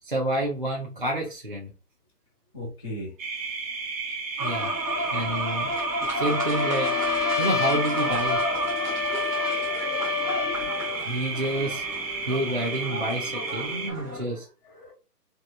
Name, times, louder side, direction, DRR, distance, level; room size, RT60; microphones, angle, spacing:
voice 1, 0.0-1.7 4.4-4.7 5.1-5.7 6.1-6.9 7.4-8.4 11.1-11.8 12.3-14.5, right 1 dB, 35° right, -2 dB, 0.4 m, -29 dB
voice 2, 2.5-3.1 13.6-14.9, equal, 20° left, -10 dB, 0.7 m, -40 dB
sound 1, 3.2-13.9, right 4 dB, 55° right, 1.0 m, -33 dB
sound 2, 4.4-14.2, equal, 15° right, 0.9 m, -31 dB
Trumpet, 6.2-11.0, left 6 dB, 75° left, 0.7 m, -28 dB
3.1 x 2.9 x 2.4 m, 0.32 s
figure-of-eight pair, 155°, 47 cm